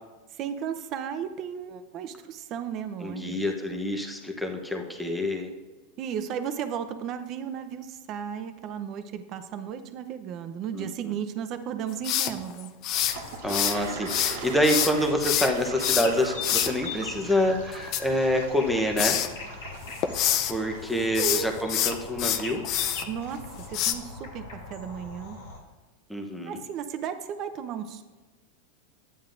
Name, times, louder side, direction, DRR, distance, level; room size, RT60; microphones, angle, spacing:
voice 1, 0.4-3.5 6.0-12.8 21.2-21.5 23.1-25.4 26.5-28.0, right 8 dB, 35° right, 10 dB, 0.6 m, -34 dB
voice 2, 3.0-5.5 10.7-10.9 13.4-19.2 20.5-22.6 26.1-26.6, left 1 dB, ahead, 2 dB, 0.8 m, -27 dB
sound 1, 12.0-13.8 14.1-16.7 17.7-18.7 19.0-19.3 19.7-20.5 21.0-23.0 23.7-23.9, left 11 dB, 40° left, 0.5 m, -26 dB
sound 2, 12.9-25.6, left 3 dB, 85° left, 2.4 m, -41 dB
Toilet flush, 13.1-21.7, right 6 dB, 70° right, 0.9 m, -41 dB
11.0 x 9.0 x 2.5 m, 1.3 s
supercardioid pair, 150°, 0 cm